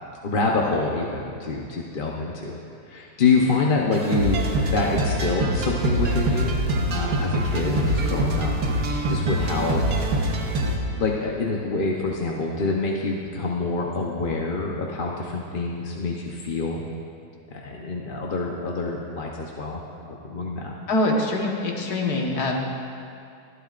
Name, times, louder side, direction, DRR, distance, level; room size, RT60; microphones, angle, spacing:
voice 1, 0.2-2.6 2.9-6.6 6.9-8.5 9.1-9.8 10.9-16.8 17.5-20.7, left 3 dB, 40° left, -2 dB, 0.9 m, -26 dB
sound 1, 3.9-10.8, right 1 dB, 90° right, 1.8 m, -24 dB
voice 2, 20.9-22.7, left 2 dB, 75° left, -1 dB, 2.0 m, -24 dB
24.0 x 11.0 x 2.5 m, 2.5 s
omnidirectional pair, 1.7 m